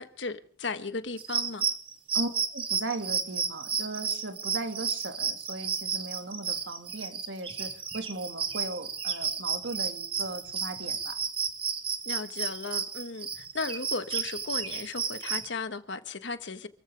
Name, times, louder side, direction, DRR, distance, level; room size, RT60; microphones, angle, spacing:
voice 1, 0.0-1.7 12.0-16.7, left 3 dB, 70° left, 1.4 m, -36 dB
sound 1, 1.2-15.5, right 6 dB, 30° right, 1.7 m, -32 dB
voice 2, 2.1-11.2, right 2 dB, 75° right, 2.2 m, -37 dB
28.0 x 15.0 x 3.5 m
head